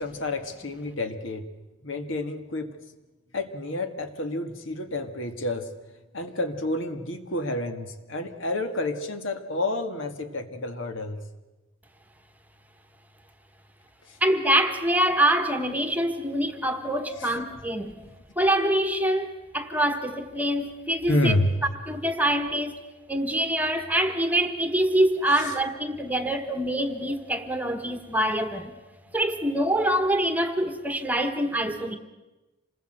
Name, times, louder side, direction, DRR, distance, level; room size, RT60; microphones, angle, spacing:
voice 1, 0.0-1.4 1.8-2.7 3.3-5.7 6.1-11.2 21.1-21.6 25.3-25.4, left 1 dB, 70° left, 8 dB, 1.9 m, -29 dB
voice 2, 14.2-18.0 18.4-21.3 21.8-22.8 23.1-28.7 29.1-32.0, right 1 dB, 10° right, 8 dB, 1.2 m, -25 dB
27.0 x 20.0 x 7.9 m, 1.1 s
head